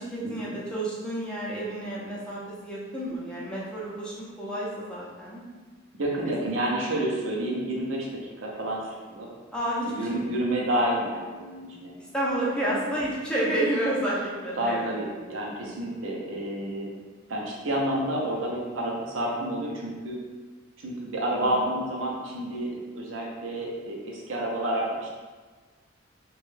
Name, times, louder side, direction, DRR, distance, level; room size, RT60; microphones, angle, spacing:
voice 1, 0.0-5.4 6.2-6.9 7.7-7.8 9.5-10.4 12.1-15.0 21.3-21.5, right 1 dB, 5° left, -7 dB, 0.6 m, -30 dB
voice 2, 6.0-9.3 9.8-11.9 12.6-12.8 14.6-16.9 17.3-20.2 20.8-25.1, right 1 dB, 75° right, -2 dB, 0.6 m, -29 dB
3.1 x 2.2 x 3.2 m, 1.4 s
head